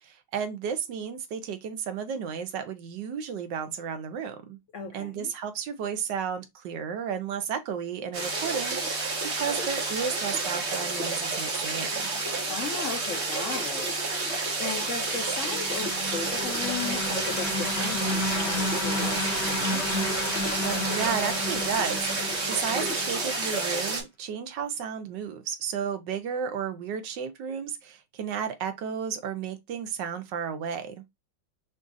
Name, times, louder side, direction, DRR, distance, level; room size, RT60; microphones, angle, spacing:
voice 1, 0.0-4.6 4.9-12.1 20.6-30.9, right 7 dB, 70° right, 1.3 m, -33 dB
voice 2, 4.7-5.3 12.5-19.9, left 5 dB, 80° left, 0.6 m, -36 dB
sound 1, 8.1-24.0, right 3 dB, 40° right, 1.3 m, -30 dB
sound 2, 15.0-23.6, left 1 dB, 55° left, 1.4 m, -32 dB
6.0 x 2.6 x 2.5 m
omnidirectional pair, 2.1 m